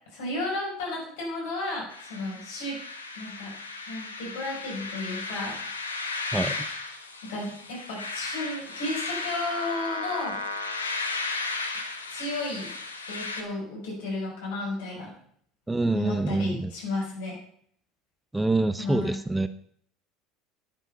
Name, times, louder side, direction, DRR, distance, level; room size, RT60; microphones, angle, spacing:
voice 1, 0.1-2.8 3.1-3.6 3.9-5.6 6.0-6.2 7.2-10.4 12.1-12.7 13.1-15.1 15.9-17.4 18.8-19.2, left 2 dB, 65° left, -2 dB, 6.1 m, -33 dB
sound 1, 1.9-13.4, left 3 dB, 85° left, 1.3 m, -35 dB
voice 2, 15.7-16.7 18.3-19.5, right 2 dB, 10° right, 13 dB, 0.6 m, -25 dB
10.0 x 9.1 x 5.7 m, 0.63 s
figure-of-eight pair, 70°, 0 cm